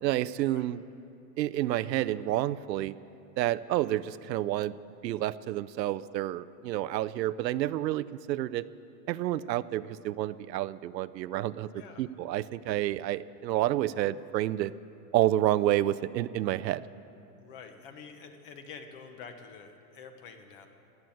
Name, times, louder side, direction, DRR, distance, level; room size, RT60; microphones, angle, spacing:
voice 1, 0.0-0.8 1.4-2.9 3.4-4.7 5.0-8.7 9.1-14.7 15.1-16.9, right 14 dB, 80° right, 15 dB, 0.6 m, -29 dB
voice 2, 11.7-12.0 17.4-20.7, left 5 dB, 30° left, 7 dB, 1.0 m, -47 dB
14.0 x 9.6 x 8.7 m, 2.8 s
supercardioid pair, 170°, 50 cm